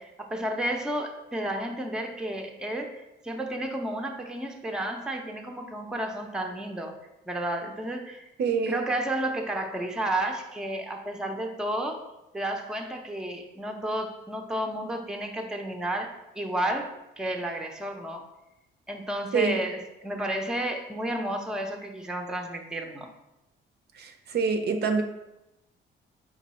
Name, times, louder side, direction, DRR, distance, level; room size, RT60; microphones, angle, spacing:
voice 1, 0.0-7.0 7.3-8.2 8.7-12.0 12.3-18.2 18.9-23.1, right 1 dB, 5° right, 3 dB, 0.5 m, -32 dB
voice 2, 8.4-8.8 19.3-19.6 24.0-25.0, right 5 dB, 55° right, 5 dB, 0.5 m, -26 dB
4.4 x 2.3 x 4.1 m, 0.92 s
cardioid pair, 90°, 20 cm